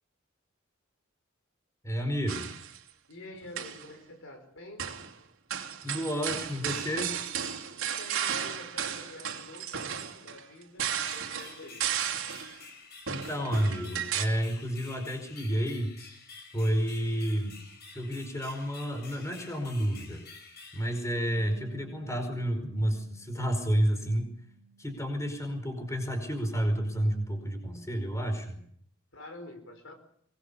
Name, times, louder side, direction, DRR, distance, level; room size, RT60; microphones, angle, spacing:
voice 1, 1.8-2.5 5.8-7.1 13.1-15.9 16.5-17.6 17.9-20.2 20.7-24.3 24.8-28.6, equal, 15° left, 6 dB, 4.9 m, -30 dB
sound 1, 2.3-2.8 3.4-3.9 4.8-5.1 5.5-12.6 13.1-14.3, right 8 dB, 75° right, 2.6 m, -34 dB
voice 2, 3.1-4.9 7.8-11.9 29.1-29.9, left 1 dB, 65° left, 6 dB, 5.3 m, -47 dB
sound 2, 11.1-21.8, left 4 dB, 50° left, 6.6 m, -50 dB
Bass guitar, 21.4-27.6, right 5 dB, 25° right, 2.7 m, -57 dB
24.0 x 21.0 x 7.0 m, 0.65 s
head